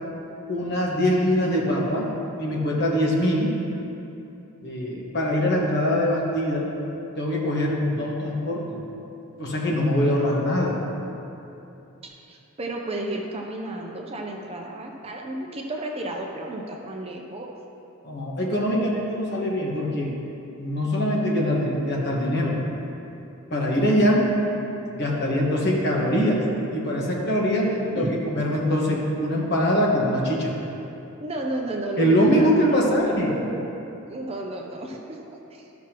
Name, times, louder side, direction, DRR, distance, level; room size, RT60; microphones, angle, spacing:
voice 1, 0.5-2.1 2.4-3.5 4.6-6.7 7.2-8.8 9.4-10.8 18.0-20.1 20.6-22.6 23.5-24.3 24.8-26.4 26.7-30.5 32.0-33.3, equal, 50° left, -3 dB, 1.4 m, -23 dB
voice 2, 12.3-17.5 27.9-28.3 31.2-33.7 34.1-35.7, right 1 dB, 25° right, 1 dB, 0.6 m, -32 dB
13.5 x 6.0 x 3.0 m, 2.9 s
head